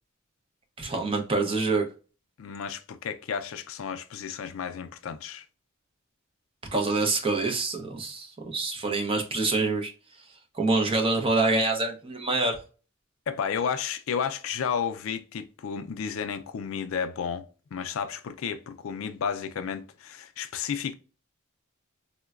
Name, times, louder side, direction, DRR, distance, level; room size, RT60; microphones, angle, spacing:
voice 1, 0.8-1.9 6.7-9.9 10.5-12.6, right 3 dB, 25° right, 0.6 m, -26 dB
voice 2, 2.4-5.4 13.3-20.9, left 7 dB, 70° left, 0.4 m, -32 dB
3.7 x 2.1 x 2.3 m
head